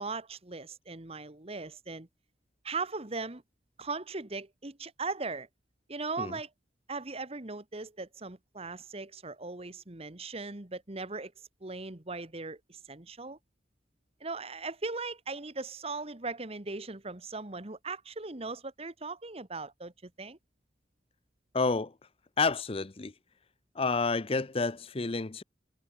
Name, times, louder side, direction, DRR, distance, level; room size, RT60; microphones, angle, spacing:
voice 1, 0.0-2.1 2.6-3.4 3.8-5.5 5.9-6.5 6.9-11.3 11.6-13.4 14.2-20.4, right 3 dB, 35° right, 1.5 m, -38 dB
voice 2, 21.5-21.9 22.4-23.1 23.7-25.4, left 4 dB, 30° left, 0.7 m, -29 dB
head